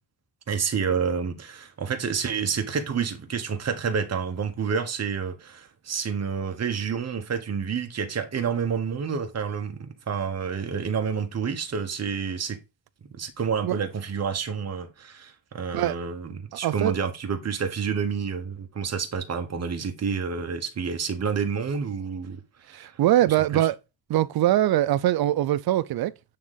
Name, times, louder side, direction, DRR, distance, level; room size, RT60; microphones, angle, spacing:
voice 1, 0.5-12.6 13.1-22.4 22.7-23.0 23.3-23.7, right 6 dB, 40° right, 1.1 m, -29 dB
voice 2, 16.6-16.9 22.7-23.8 24.1-26.1, right 13 dB, 65° right, 0.5 m, -22 dB
8.5 x 3.7 x 3.8 m
wide cardioid pair, 145°, 39 cm